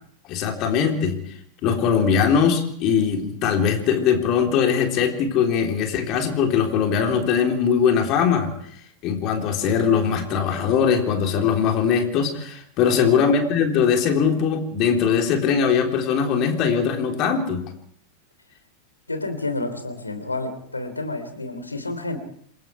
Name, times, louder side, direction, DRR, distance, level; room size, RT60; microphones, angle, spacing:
voice 1, 0.3-1.2 1.6-8.5 9.0-17.6, left 7 dB, 40° left, 3 dB, 3.7 m, -21 dB
voice 2, 19.1-22.2, left 2 dB, 80° left, 9 dB, 3.3 m, -30 dB
28.0 x 21.5 x 4.8 m, 0.66 s
figure-of-eight pair, 90°, 0 cm